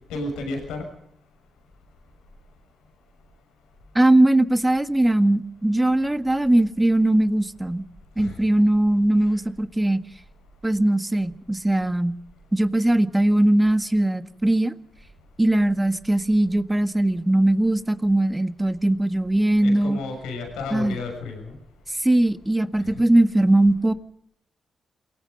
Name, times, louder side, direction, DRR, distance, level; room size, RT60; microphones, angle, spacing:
voice 1, 0.1-0.9 8.2-8.4 9.2-9.4 19.6-21.6 22.8-22.9, left 3 dB, 85° left, 3 dB, 6.3 m, -32 dB
voice 2, 3.9-7.8 8.2-10.0 10.6-12.2 12.5-14.7 15.4-20.0 20.7-21.0 22.0-23.9, right 1 dB, 15° right, 10 dB, 1.7 m, -20 dB
28.5 x 18.0 x 5.4 m, 0.71 s
hypercardioid pair, 40°, 0 cm